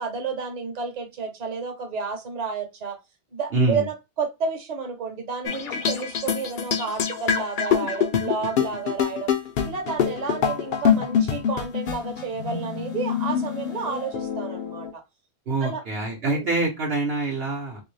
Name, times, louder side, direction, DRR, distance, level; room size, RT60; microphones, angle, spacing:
voice 1, 0.0-3.0 3.3-9.3 9.6-15.0 15.6-15.8 16.2-16.5, right 5 dB, 40° right, 0.9 m, -31 dB
voice 2, 3.5-3.9 15.5-17.8, right 2 dB, 65° right, 1.1 m, -25 dB
sound 1, 5.5-14.9, left 7 dB, 60° left, 0.7 m, -25 dB
3.0 x 2.7 x 3.2 m
omnidirectional pair, 1.1 m